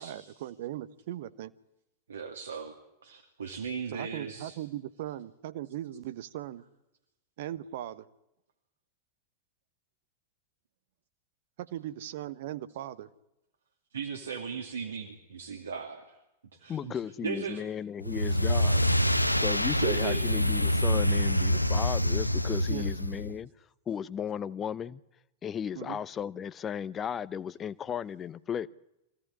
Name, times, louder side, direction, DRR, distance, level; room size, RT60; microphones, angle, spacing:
voice 1, 0.0-1.5 3.9-6.6 7.4-8.1 11.6-13.1 22.7-22.9 25.7-26.0, right 13 dB, 55° right, 1.1 m, -39 dB
voice 2, 2.1-2.8 3.0-4.6 13.9-16.2 16.6-17.6 19.5-20.2, right 6 dB, 70° right, 2.5 m, -37 dB
voice 3, 16.7-18.8 19.4-23.5 23.9-25.0 25.4-28.7, left 8 dB, 25° left, 0.8 m, -35 dB
sound 1, 18.0-23.3, equal, 90° left, 1.0 m, -26 dB
24.5 x 17.0 x 9.8 m
figure-of-eight pair, 90°, 0 cm